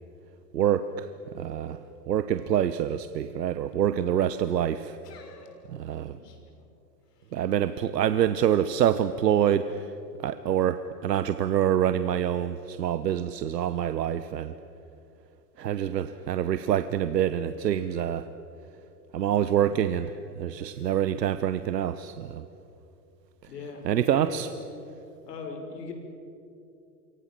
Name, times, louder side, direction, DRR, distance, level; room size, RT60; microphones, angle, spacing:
voice 1, 0.5-1.8 2.1-5.0 5.7-6.2 7.3-9.9 10.2-14.5 15.6-18.3 19.1-22.5 23.4-23.5 23.8-24.5, right 10 dB, 90° right, 12 dB, 1.1 m, -26 dB
voice 2, 5.0-5.6 6.1-6.4 7.2-7.4 20.7-20.9 23.5-24.4 25.3-25.9, left 4 dB, 75° left, 4 dB, 6.7 m, -40 dB
29.0 x 24.5 x 7.6 m, 2.7 s
hypercardioid pair, 145°, 48 cm